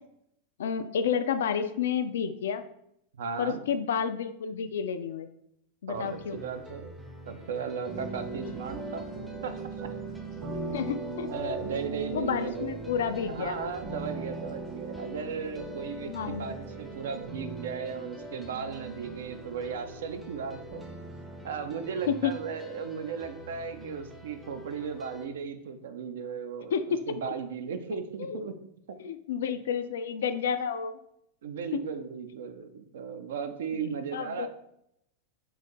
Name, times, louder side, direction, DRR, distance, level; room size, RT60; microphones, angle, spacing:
voice 1, 0.6-2.6 3.4-5.3 5.8-6.4 10.7-11.3 12.1-13.6 16.1-16.5 22.1-22.3 26.7-27.2 28.2-28.4 29.0-31.0 31.7-31.8 33.7-33.9 34.1-34.5, left 7 dB, 60° left, 10 dB, 0.3 m, -30 dB
voice 2, 3.1-3.6 5.9-6.9 7.3-9.1 9.4-9.9 10.5-10.7 11.3-12.7 13.3-20.9 21.4-26.7 27.1-28.5 28.9-29.0 31.4-34.5, right 6 dB, 60° right, 8 dB, 0.4 m, -36 dB
sound 1, 5.9-25.3, equal, ahead, 0.5 m, -47 dB
sound 2, 7.9-23.0, right 3 dB, 30° right, 0.8 m, -40 dB
3.9 x 2.5 x 4.2 m, 0.76 s
figure-of-eight pair, 90°, 0 cm